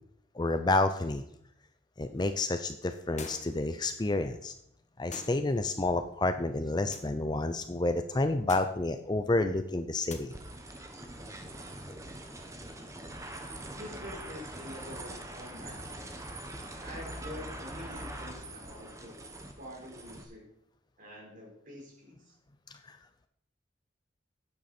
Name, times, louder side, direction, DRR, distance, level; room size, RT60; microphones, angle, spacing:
voice 1, 0.4-1.2 2.0-4.5 5.0-10.3 22.9-23.0, left 2 dB, 20° left, 9 dB, 0.5 m, -29 dB
sound 1, 3.2-3.7 5.1-5.4 6.9-7.2 8.5-8.8 10.1-10.2, left 4 dB, 35° left, 1.3 m, -44 dB
sound 2, 10.3-20.2, right 1 dB, 15° right, 1.1 m, -43 dB
voice 2, 13.7-16.1 16.8-19.1 19.6-20.4 21.0-22.3, left 1 dB, 45° right, -2 dB, 4.2 m, -46 dB
12.5 x 9.3 x 4.3 m, 0.73 s
head